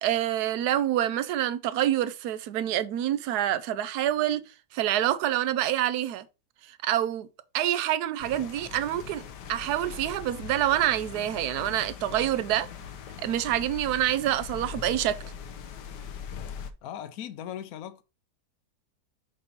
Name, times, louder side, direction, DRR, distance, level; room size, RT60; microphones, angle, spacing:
voice 1, 0.0-4.4 4.7-6.2 6.7-7.3 7.5-9.2 9.5-12.7 13.2-15.2, right 12 dB, 75° right, 1.1 m, -27 dB
sound 1, 8.2-16.7, left 7 dB, 90° left, 1.3 m, -41 dB
voice 2, 16.8-18.0, left 10 dB, 65° left, 1.1 m, -38 dB
6.8 x 2.9 x 5.3 m
omnidirectional pair, 1.8 m